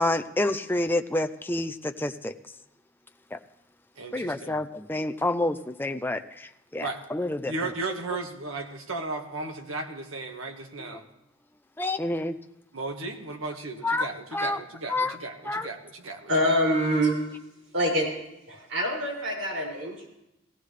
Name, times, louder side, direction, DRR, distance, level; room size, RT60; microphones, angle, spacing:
voice 1, 0.0-2.3 3.3-3.4 4.1-7.7 10.8-11.0 11.8-12.4 13.8-14.6 14.9-15.2 15.4-15.7, left 2 dB, 10° left, 7 dB, 0.5 m, -28 dB
voice 2, 4.0-4.6 6.8-7.0 7.5-11.0 12.7-16.6, right 3 dB, 85° right, 4 dB, 1.7 m, -35 dB
voice 3, 16.3-17.2 17.7-18.1 18.5-20.1, equal, 65° right, -2 dB, 6.0 m, -25 dB
17.5 x 16.5 x 3.3 m, 0.86 s
head